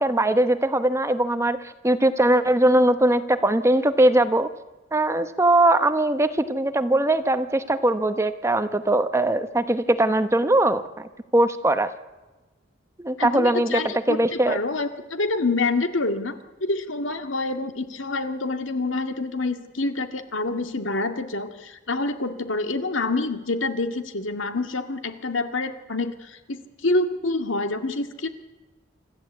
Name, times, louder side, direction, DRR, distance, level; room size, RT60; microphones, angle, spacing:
voice 1, 0.0-1.6 1.8-4.5 4.9-11.9 13.0-13.8 14.1-14.6, right 1 dB, 15° right, 10 dB, 0.9 m, -21 dB
voice 2, 13.2-28.3, left 2 dB, 80° left, 7 dB, 2.1 m, -27 dB
26.0 x 14.5 x 8.3 m, 1.1 s
head